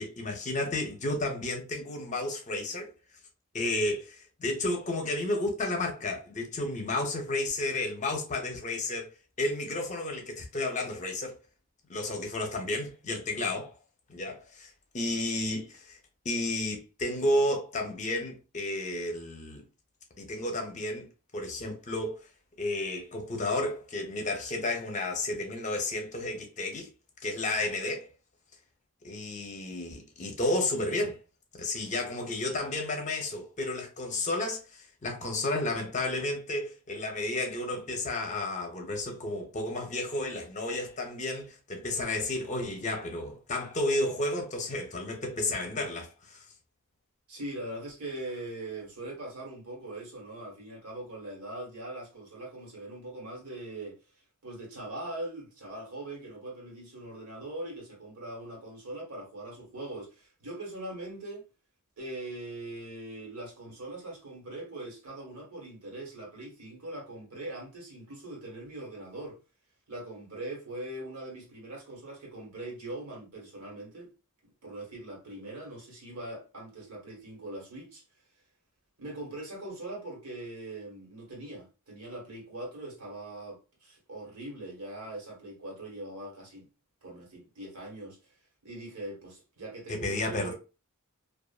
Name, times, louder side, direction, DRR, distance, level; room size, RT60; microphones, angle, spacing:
voice 1, 0.0-2.9 3.5-9.1 9.4-11.3 11.9-13.7 14.1-14.7 14.9-16.0 16.2-19.6 20.2-21.1 21.3-22.2 22.6-26.9 27.2-28.1 29.0-31.2 31.5-46.4 89.9-90.5, left 2 dB, 35° left, 0.6 m, -32 dB
voice 2, 47.3-54.0 54.4-61.5 62.0-69.4 69.9-74.1 74.4-78.0 79.0-86.7 87.0-88.2 88.6-90.5, right 1 dB, 80° right, 1.3 m, -41 dB
2.5 x 2.4 x 2.3 m
head